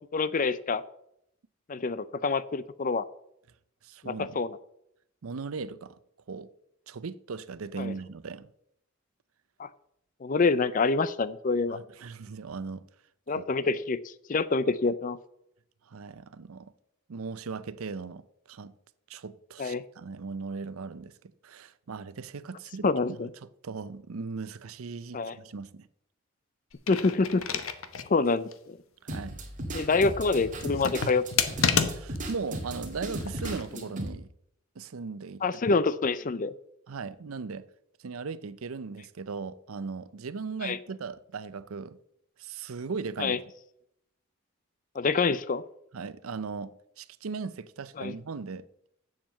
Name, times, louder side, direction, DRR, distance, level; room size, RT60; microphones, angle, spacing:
voice 1, 0.1-0.8 1.7-3.1 4.0-4.6 7.8-7.9 9.6-9.7 10.2-11.8 13.3-15.2 19.6-19.8 22.8-23.3 25.1-25.4 26.9-27.4 28.1-28.8 29.7-31.2 35.4-36.5 40.6-40.8 43.2-43.4 45.0-45.6 48.0-48.1, left 4 dB, 40° left, 0.5 m, -26 dB
voice 2, 3.8-4.4 5.2-6.0 6.3-6.5 6.9-8.5 11.7-12.8 13.3-13.4 15.9-16.7 17.1-18.7 19.1-21.1 21.4-25.9 29.0-29.4 31.9-34.3 34.8-35.4 36.9-37.7 38.0-42.0 42.4-43.4 45.9-48.7, right 4 dB, 80° right, 0.6 m, -38 dB
sound 1, 26.7-28.1 28.5-28.6 30.5-32.3 33.2-33.7, left 6 dB, 75° left, 0.9 m, -29 dB
sound 2, 29.1-34.1, right 1 dB, 35° right, 1.9 m, -36 dB
7.4 x 7.3 x 7.4 m
head